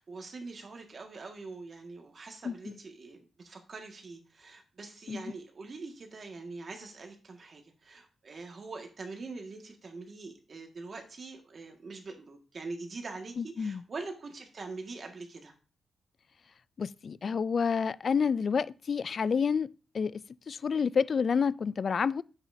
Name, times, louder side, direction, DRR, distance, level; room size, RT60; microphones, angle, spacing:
voice 1, 0.0-15.5, right 3 dB, 45° right, 1.7 m, -44 dB
voice 2, 2.4-2.8 5.1-5.2 13.4-13.8 16.8-19.7 19.9-20.2 20.5-22.2, left 6 dB, 50° left, 0.3 m, -29 dB
9.7 x 8.0 x 2.7 m
cardioid pair, 110°, 0 cm